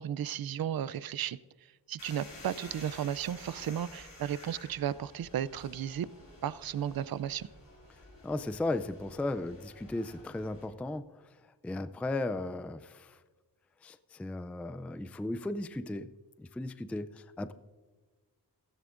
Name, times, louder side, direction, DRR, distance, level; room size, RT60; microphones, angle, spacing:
voice 1, 0.0-1.4 1.9-6.1 6.4-7.5, right 10 dB, 60° right, 18 dB, 0.5 m, -34 dB
sound 1, 2.0-10.7, left 2 dB, 55° left, 4.5 m, -52 dB
voice 2, 8.2-13.2 13.8-17.5, left 2 dB, 5° left, 12 dB, 0.3 m, -36 dB
16.0 x 14.5 x 2.5 m, 1.3 s
wide cardioid pair, 115°, 41 cm